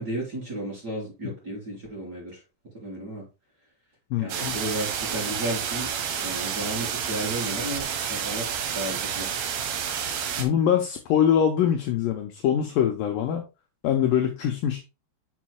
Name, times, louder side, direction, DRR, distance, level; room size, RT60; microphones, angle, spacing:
voice 1, 0.0-2.4 2.7-3.3 4.2-5.9 6.2-9.3, right 1 dB, 25° right, -5 dB, 4.0 m, -33 dB
voice 2, 4.1-4.6 10.4-13.4 13.8-14.8, left 9 dB, 80° left, 4 dB, 2.1 m, -23 dB
sound 1, 4.3-10.4, right 7 dB, 70° right, 2.7 m, -30 dB
7.4 x 7.1 x 2.2 m, 0.28 s
omnidirectional pair, 4.6 m